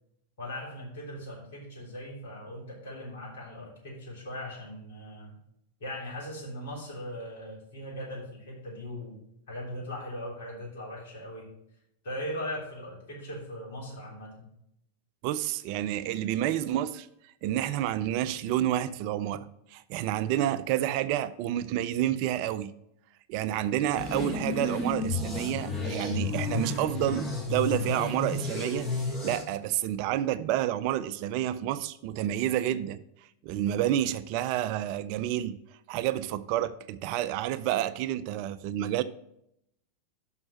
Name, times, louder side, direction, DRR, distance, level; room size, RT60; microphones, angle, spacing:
voice 1, 0.4-5.4 5.8-9.2 9.5-11.5 12.0-14.5, left 1 dB, 55° left, 3.5 m, -39 dB
voice 2, 15.2-22.7 23.3-33.0 33.4-35.6 35.9-39.0, right 12 dB, 45° right, 0.3 m, -29 dB
sound 1, 24.0-29.4, left 3 dB, 15° left, 1.6 m, -32 dB
6.1 x 5.7 x 5.9 m
figure-of-eight pair, 90°, 0 cm